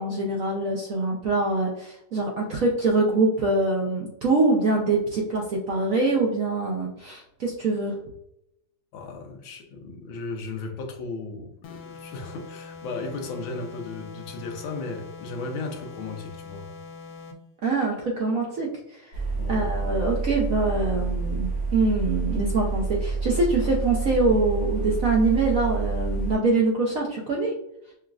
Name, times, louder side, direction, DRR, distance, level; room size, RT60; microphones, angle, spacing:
voice 1, 0.0-7.9 17.6-19.2 19.5-27.5, right 3 dB, 70° right, -1 dB, 0.8 m, -24 dB
voice 2, 8.9-16.7 19.4-19.7, left 3 dB, 85° left, 3 dB, 1.5 m, -35 dB
sound 1, 11.6-17.5, left 5 dB, 70° left, 0.9 m, -43 dB
sound 2, 19.1-26.3, right 4 dB, 90° right, 2.0 m, -28 dB
6.1 x 2.4 x 2.3 m, 0.80 s
omnidirectional pair, 2.1 m